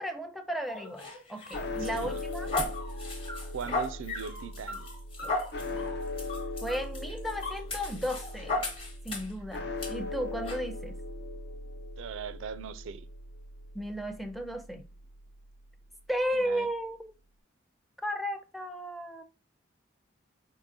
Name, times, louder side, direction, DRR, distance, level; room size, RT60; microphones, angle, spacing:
voice 1, 0.0-2.5 6.6-8.7 9.0-11.0 13.7-14.8 16.1-17.1 18.0-19.2, equal, ahead, 0.4 m, -34 dB
sound 1, 0.7-9.4 9.8-9.9 10.5-10.6, left 2 dB, 25° left, 0.9 m, -36 dB
sound 2, 1.5-15.8, left 2 dB, 55° left, 0.6 m, -39 dB
voice 2, 1.8-2.2 3.5-4.9 12.0-13.1 16.3-16.7, right 6 dB, 75° right, 0.4 m, -40 dB
4.9 x 3.7 x 2.7 m
head